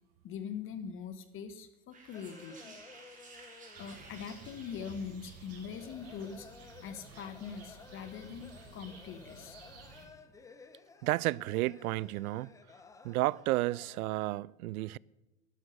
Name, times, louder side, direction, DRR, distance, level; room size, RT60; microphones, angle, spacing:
voice 1, 0.2-2.7 3.8-9.6, left 7 dB, 30° left, 1.0 m, -43 dB
sound 1, 1.9-5.5, right 3 dB, 20° right, 3.4 m, -54 dB
sound 2, 2.1-14.2, left 4 dB, 10° left, 0.5 m, -56 dB
sound 3, 3.7-10.1, right 4 dB, 35° right, 3.8 m, -53 dB
voice 2, 11.0-12.5 13.0-15.0, right 18 dB, 80° right, 0.5 m, -32 dB
12.0 x 11.5 x 6.6 m
supercardioid pair, 130°, 43 cm